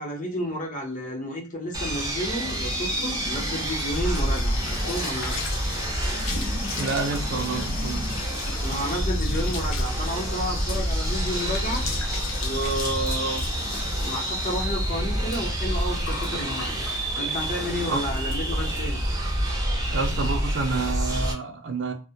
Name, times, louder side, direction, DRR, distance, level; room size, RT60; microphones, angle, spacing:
voice 1, 0.0-5.4 8.6-11.9 12.4-13.4 14.0-16.7 17.2-19.0, equal, 40° left, 0.8 m, -31 dB
sound 1, 1.7-21.3, right 1 dB, 20° right, 0.5 m, -28 dB
sound 2, 2.0-17.8 18.2-18.4 18.7-18.8 19.1-19.5, left 4 dB, 80° left, 0.5 m, -37 dB
voice 2, 6.7-8.2 17.9-18.0 19.9-21.9, right 3 dB, 65° right, 0.5 m, -29 dB
2.2 x 2.1 x 2.7 m
head